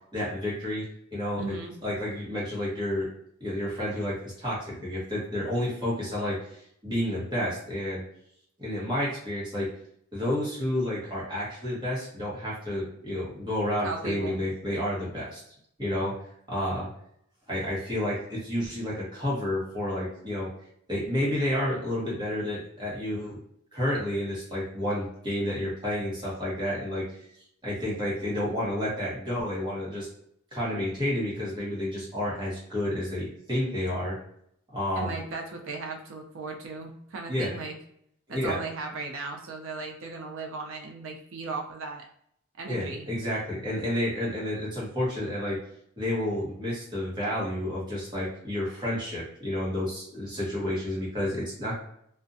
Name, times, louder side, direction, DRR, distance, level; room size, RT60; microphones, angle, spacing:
voice 1, 0.1-0.8 1.1-1.6 1.8-3.1 3.4-8.0 8.6-9.7 10.1-15.4 15.8-16.9 17.5-20.5 20.9-23.4 23.7-27.0 27.6-30.1 30.5-34.2 34.7-35.2 37.3-37.5 38.3-38.6 42.7-45.6 46.0-51.8, left 1 dB, 20° right, -7 dB, 1.0 m, -30 dB
voice 2, 1.4-1.7 13.8-14.4 35.0-37.7 38.3-42.0 42.6-43.1, right 3 dB, 70° right, 2 dB, 0.5 m, -36 dB
2.5 x 2.2 x 2.6 m, 0.71 s
head